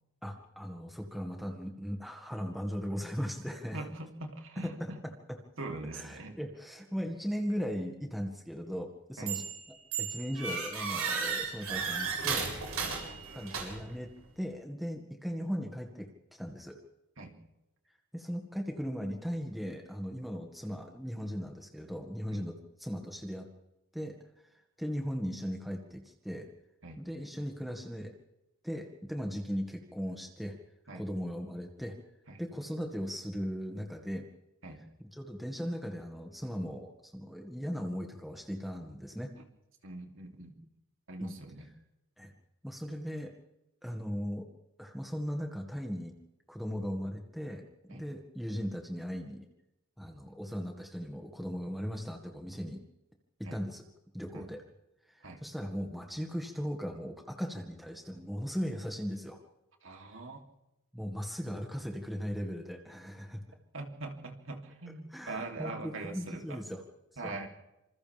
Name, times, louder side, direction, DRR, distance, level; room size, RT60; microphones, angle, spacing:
voice 1, 0.2-3.8 4.6-4.9 5.9-9.5 10.0-12.5 13.3-14.1 14.4-16.8 18.1-23.5 23.9-24.2 24.8-26.5 27.0-28.1 28.6-30.6 30.9-32.0 32.4-34.3 35.0-39.3 41.2-41.3 42.2-42.3 42.6-43.3 43.8-44.5 44.8-46.1 46.5-49.5 50.0-52.8 53.4-53.8 54.1-54.6 55.1-59.4 60.9-63.6 65.1-66.8 67.2-67.4, equal, ahead, 2 dB, 1.9 m, -38 dB
voice 2, 3.7-5.0 5.6-6.4 9.2-9.4 12.8-13.0 17.2-17.4 22.3-22.4 26.8-27.0 30.9-31.0 32.3-32.4 34.6-34.8 39.8-40.5 41.1-41.7 47.9-48.1 53.4-53.6 54.3-54.5 55.2-55.4 59.8-60.4 63.7-66.6 67.2-67.5, right 2 dB, 60° right, 2 dB, 3.2 m, -42 dB
sound 1, 9.3-9.6 9.9-14.0, right 5 dB, 75° right, 7.6 m, -34 dB
27.5 x 27.0 x 3.5 m, 0.91 s
head